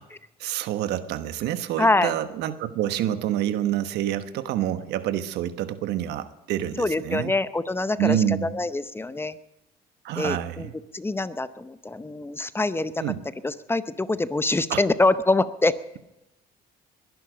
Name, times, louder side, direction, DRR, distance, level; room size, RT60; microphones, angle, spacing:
voice 1, 0.4-7.3 8.0-8.6 10.0-10.7 13.0-13.2 14.7-14.8, right 11 dB, 80° right, 11 dB, 1.2 m, -27 dB
voice 2, 1.8-2.1 6.8-9.4 10.2-13.0 13.4-16.0, left 2 dB, 15° left, 14 dB, 0.7 m, -25 dB
21.5 x 11.0 x 5.1 m, 0.94 s
cardioid pair, 110°, 17 cm